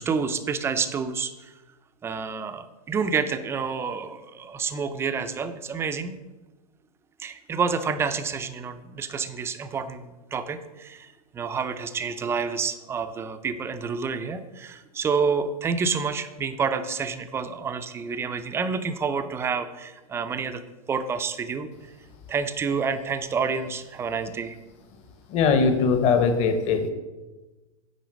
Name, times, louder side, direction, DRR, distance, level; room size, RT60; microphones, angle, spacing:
voice 1, 0.0-1.5 2.0-6.2 7.2-20.6 20.9-21.9 22.3-24.6, right 5 dB, 15° right, 9 dB, 0.5 m, -29 dB
voice 2, 25.3-26.9, left 5 dB, 35° left, 8 dB, 1.1 m, -21 dB
9.3 x 3.8 x 6.2 m, 1.1 s
hypercardioid pair, 135°, 19 cm